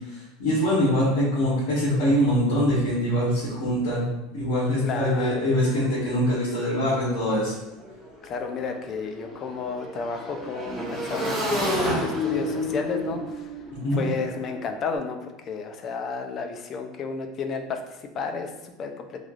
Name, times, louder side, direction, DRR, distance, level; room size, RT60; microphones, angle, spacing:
voice 1, 0.1-4.0 4.3-7.5 13.8-14.0, equal, 85° left, -9 dB, 1.1 m, -23 dB
voice 2, 4.8-5.5 8.2-13.5 13.9-19.2, left 5 dB, 40° left, 5 dB, 0.3 m, -32 dB
Motorcycle / Engine, 7.7-14.9, left 1 dB, 20° right, 1.1 m, -30 dB
3.1 x 2.3 x 2.4 m, 0.97 s
supercardioid pair, 125°, 0 cm